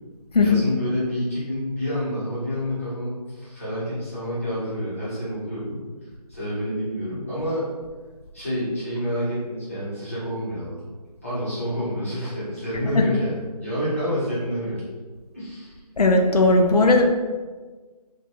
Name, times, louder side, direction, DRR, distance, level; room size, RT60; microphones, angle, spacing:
voice 1, 0.4-5.8 6.3-7.7 8.3-10.8 11.2-14.8 15.3-15.8, equal, 20° left, -12 dB, 1.1 m, -28 dB
voice 2, 16.0-17.0, left 2 dB, 70° left, 3 dB, 0.5 m, -17 dB
4.4 x 2.5 x 2.4 m, 1.4 s
figure-of-eight pair, 180°, 20 cm